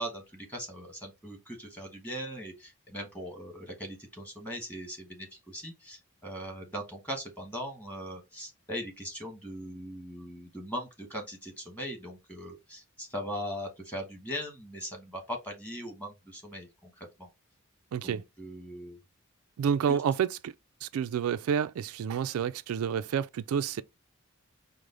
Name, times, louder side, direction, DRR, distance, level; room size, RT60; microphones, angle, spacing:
voice 1, 0.0-17.3 18.0-19.0 19.9-20.0, equal, 5° left, 1.2 m, -40 dB
voice 2, 17.9-18.2 19.6-20.5 20.8-23.8, right 7 dB, 85° right, 0.3 m, -29 dB
4.8 x 2.0 x 3.8 m
head